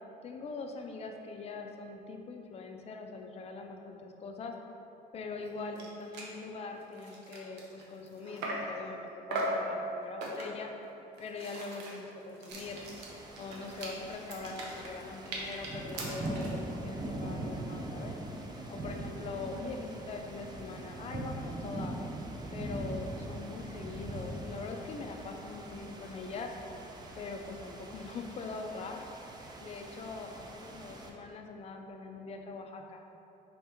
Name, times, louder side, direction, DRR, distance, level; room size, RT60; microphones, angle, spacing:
voice 1, 0.2-4.5 5.1-9.0 9.3-10.7 11.2-12.8 13.4-18.1 18.7-22.0 22.5-26.5 27.2-29.0 29.6-33.0, left 3 dB, 40° left, 3 dB, 0.4 m, -42 dB
sound 1, 5.5-5.6 5.8-5.9 6.1-6.4 6.8-8.8 9.3-9.7 10.2-10.7 11.1-16.6, right 2 dB, 90° right, 0.7 m, -40 dB
sound 2, 12.5-31.1, right 1 dB, 25° right, 0.5 m, -42 dB
4.2 x 2.9 x 3.5 m, 2.9 s
cardioid pair, 110°, 17 cm